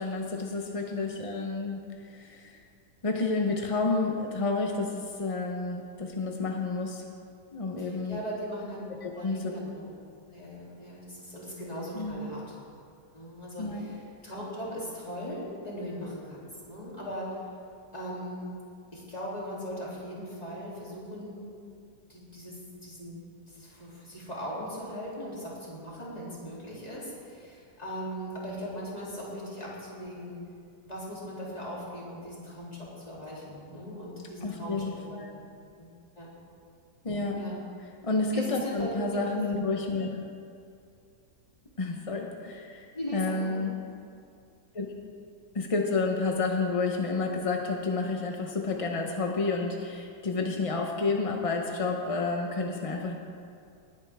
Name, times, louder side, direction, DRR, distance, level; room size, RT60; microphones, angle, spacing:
voice 1, 0.0-2.6 3.0-7.0 7.5-8.2 9.0-9.5 11.9-12.3 13.6-13.8 34.4-35.3 37.0-37.4 38.0-40.2 41.8-43.7 44.7-44.9 45.5-53.2, left 3 dB, 45° left, 2 dB, 0.4 m, -30 dB
voice 2, 0.6-1.0 7.8-8.8 9.1-9.8 10.3-12.4 13.1-16.4 16.7-17.4 17.9-18.5 18.9-21.4 22.1-22.6 22.8-23.2 23.5-30.4 30.8-35.4 35.8-36.3 37.4-37.6 38.3-39.2 42.9-43.5, equal, 20° left, -6 dB, 2.9 m, -39 dB
19.0 x 8.9 x 3.5 m, 2.4 s
omnidirectional pair, 1.8 m